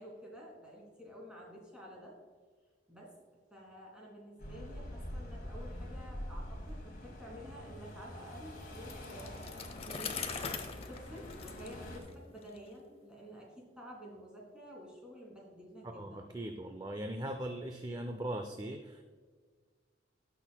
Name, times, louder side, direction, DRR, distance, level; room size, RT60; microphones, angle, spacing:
voice 1, 0.0-2.2 2.9-3.1 3.5-10.2 10.9-16.3, equal, 5° right, -3 dB, 2.5 m, -50 dB
sound 1, 4.4-12.0, equal, 55° left, 2.1 m, -45 dB
Bicycle, 8.7-12.6, left 5 dB, 30° left, 0.7 m, -42 dB
voice 2, 15.8-19.0, right 1 dB, 20° right, 6 dB, 0.5 m, -40 dB
17.5 x 6.1 x 2.2 m, 1.5 s
head